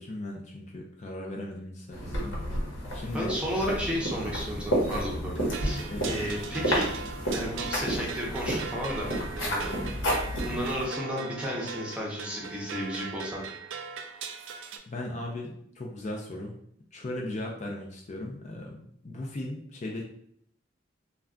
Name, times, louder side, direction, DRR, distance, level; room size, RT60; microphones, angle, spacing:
voice 1, 0.0-2.4 2.9-3.3 4.9-5.1 5.9-6.1 14.9-16.5 16.9-20.0, left 1 dB, 35° left, 0 dB, 0.4 m, -37 dB
sound 1, 1.9-10.8, equal, 70° left, 0.9 m, -31 dB
voice 2, 3.1-6.9 7.3-9.1 9.3-9.8 10.4-13.4, equal, 5° right, -3 dB, 0.6 m, -33 dB
sound 2, 5.5-14.8, right 5 dB, 70° right, 0.3 m, -40 dB
2.2 x 2.2 x 3.6 m, 0.68 s
head